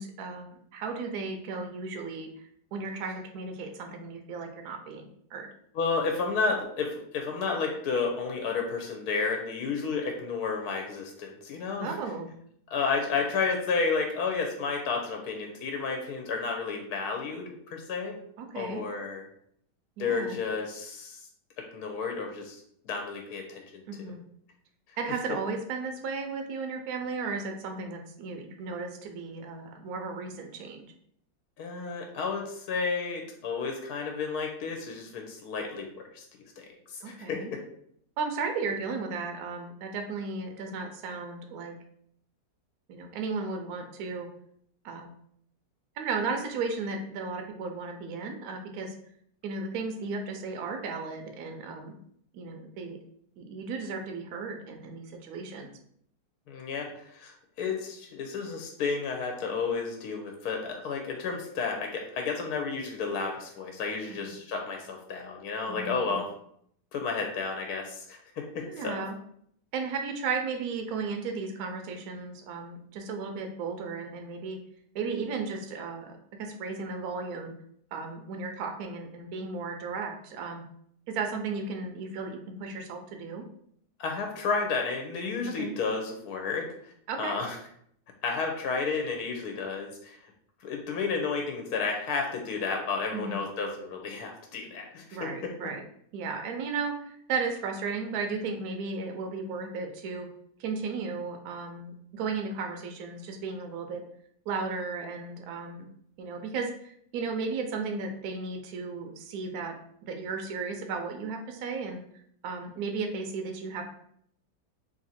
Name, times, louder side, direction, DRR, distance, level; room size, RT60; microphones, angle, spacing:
voice 1, 0.0-2.3 2.7-5.5 11.8-12.3 18.4-18.8 20.0-20.4 23.9-24.2 25.0-30.9 37.0-37.5 38.2-41.8 42.9-44.3 44.8-45.1 46.0-48.9 49.4-51.9 52.3-53.0 53.4-55.8 64.1-64.2 65.7-66.2 68.6-69.1 69.7-74.6 74.9-77.5 77.9-80.6 81.1-83.4 85.5-85.8 87.1-87.4 93.1-93.5 95.1-95.8 96.1-100.3 100.6-104.0 104.5-105.8 106.2-112.0 112.4-113.8, right 4 dB, 70° right, 3 dB, 1.0 m, -35 dB
voice 2, 5.7-12.0 12.7-18.2 18.5-19.3 20.0-21.2 21.6-23.8 31.6-36.2 36.6-36.7 36.9-37.6 56.5-66.3 66.9-69.0 84.0-86.9 87.2-87.6 88.2-90.2 90.6-95.5, left 4 dB, 70° left, 2 dB, 1.1 m, -32 dB
3.0 x 2.6 x 4.1 m, 0.68 s
omnidirectional pair, 1.8 m